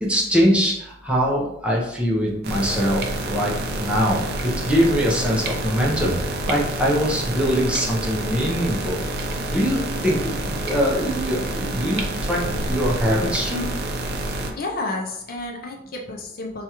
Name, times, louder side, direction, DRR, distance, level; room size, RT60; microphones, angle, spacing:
voice 1, 0.0-6.2 6.4-9.0 9.5-13.7, equal, 5° right, -4 dB, 0.6 m, -23 dB
sound 1, 2.4-14.5, right 1 dB, 50° right, 0.4 m, -28 dB
voice 2, 14.6-16.6, left 2 dB, 45° left, 2 dB, 0.5 m, -30 dB
4.4 x 2.3 x 2.9 m, 0.78 s
head